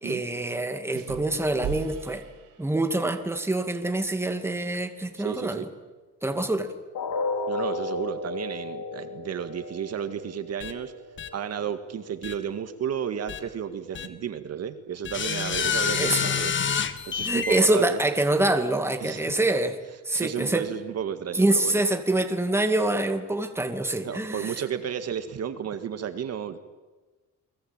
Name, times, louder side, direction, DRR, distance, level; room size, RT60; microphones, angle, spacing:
voice 1, 0.0-2.2 2.6-5.7 6.2-6.7 16.0-16.4 17.2-19.8 20.0-20.7 21.3-24.5, right 2 dB, 10° right, 6 dB, 2.3 m, -25 dB
sound 1, 0.9-3.1, right 9 dB, 85° right, 3.6 m, -38 dB
voice 2, 5.2-5.6 7.5-10.9 11.3-18.0 19.0-19.2 20.1-21.8 24.0-26.6, right 8 dB, 50° right, 9 dB, 1.9 m, -33 dB
sound 2, 6.9-12.9 13.3-13.5 14.0-14.1, left 3 dB, 75° left, 4.6 m, -35 dB
sound 3, 10.6-10.7 11.2-11.3 12.2-12.3 13.3-13.4 13.9-14.1 15.0-17.6, left 7 dB, 40° left, 1.8 m, -27 dB
30.0 x 22.0 x 8.9 m, 1.2 s
cardioid pair, 130°, 32 cm